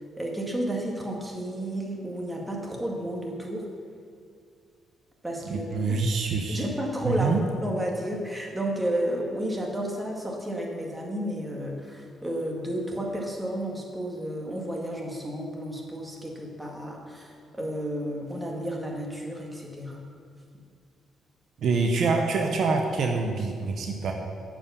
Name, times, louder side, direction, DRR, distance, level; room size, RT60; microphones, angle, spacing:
voice 1, 0.2-3.6 5.2-6.0 6.5-7.3 7.6-20.0, right 1 dB, 10° right, -1 dB, 1.8 m, -32 dB
voice 2, 5.4-6.6 7.0-7.4 21.6-24.1, right 4 dB, 65° right, 3 dB, 0.8 m, -26 dB
8.7 x 5.1 x 6.9 m, 2.3 s
cardioid pair, 90°, 0 cm